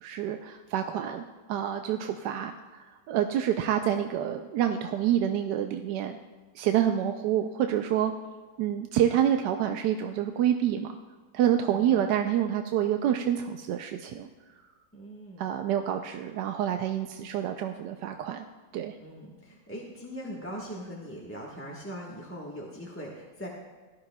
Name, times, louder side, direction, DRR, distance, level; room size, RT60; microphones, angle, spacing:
voice 1, 0.0-6.2 6.5-8.1 8.6-11.0 11.3-14.3 15.4-18.4 18.7-18.9, right 10 dB, 85° right, 5 dB, 1.2 m, -27 dB
voice 2, 11.6-12.1 14.9-15.8 19.0-23.5, equal, 10° left, -4 dB, 1.1 m, -41 dB
17.5 x 12.0 x 2.3 m, 1.4 s
omnidirectional pair, 1.8 m